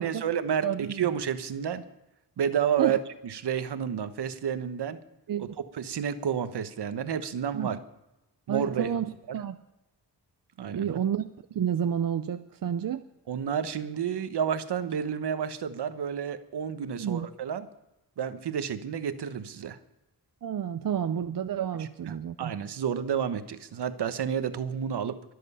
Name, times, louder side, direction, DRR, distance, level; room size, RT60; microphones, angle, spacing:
voice 1, 0.0-1.8 2.4-3.0 3.2-5.0 5.7-7.8 8.5-8.9 9.3-9.4 10.6-11.0 13.3-17.7 18.2-19.8 21.8-25.1, right 8 dB, 70° right, 11 dB, 1.1 m, -30 dB
voice 2, 0.6-1.1 2.8-3.0 5.3-5.6 7.5-7.7 8.5-9.6 10.7-13.0 17.0-17.3 20.4-22.5, right 9 dB, 55° right, 9 dB, 0.6 m, -30 dB
23.5 x 7.9 x 5.5 m, 0.98 s
wide cardioid pair, 125°, 42 cm